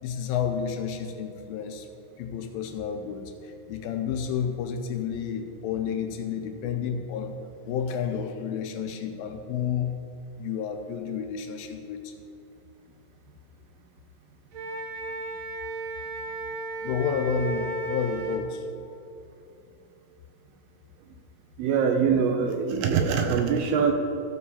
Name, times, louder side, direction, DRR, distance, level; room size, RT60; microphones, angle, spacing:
voice 1, 0.0-1.9 2.2-7.4 7.7-10.0 10.4-12.1 16.8-18.7, left 7 dB, 90° left, 4 dB, 2.0 m, -30 dB
Wind instrument woodwind instrument, 14.5-18.4, right 2 dB, 65° right, 2.6 m, -34 dB
voice 2, 21.6-23.9, right 6 dB, 80° right, 5 dB, 2.4 m, -23 dB
13.5 x 4.7 x 6.9 m, 2.9 s
omnidirectional pair, 4.9 m